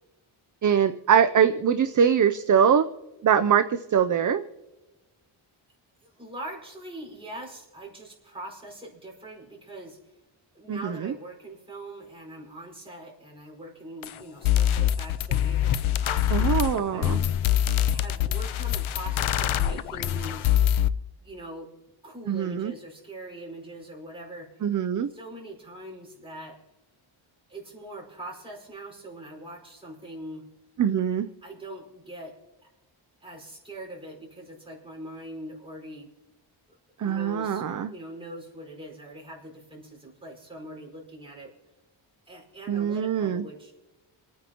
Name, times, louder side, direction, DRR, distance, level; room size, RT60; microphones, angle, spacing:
voice 1, 0.6-2.9 3.2-4.4 10.7-11.1 16.3-17.2 22.3-22.7 24.6-25.1 30.8-31.3 37.0-37.9 42.7-43.4, right 8 dB, 40° right, 10 dB, 0.5 m, -23 dB
voice 2, 6.0-10.1 10.5-17.4 17.9-20.6 21.2-21.7 22.0-24.6 25.1-26.6 27.5-30.5 31.4-32.4 33.2-36.1 37.0-37.6 37.9-41.5 42.3-43.7, right 1 dB, 10° right, -2 dB, 4.9 m, -42 dB
sound 1, 14.0-14.1 14.4-20.9, left 11 dB, 80° left, 0.6 m, -24 dB
27.5 x 9.6 x 2.9 m, 1.1 s
wide cardioid pair, 140°, 49 cm